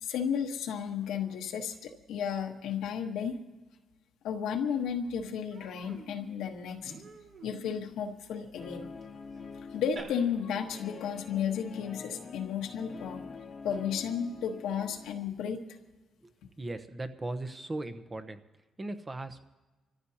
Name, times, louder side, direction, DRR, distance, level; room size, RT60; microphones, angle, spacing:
voice 1, 0.0-3.4 4.2-6.9 7.4-8.9 9.7-13.2 13.6-15.6, left 7 dB, 85° left, 3 dB, 1.3 m, -33 dB
Human voice, 4.5-4.6 4.9-5.1 5.5-10.0, right 3 dB, 65° right, 4.1 m, -51 dB
Guitar, 8.5-15.1, left 5 dB, 45° left, 1.0 m, -46 dB
voice 2, 16.6-18.4 18.8-19.5, right 2 dB, 25° right, 9 dB, 0.9 m, -38 dB
28.0 x 14.5 x 2.9 m, 1.1 s
cardioid pair, 90°, 0 cm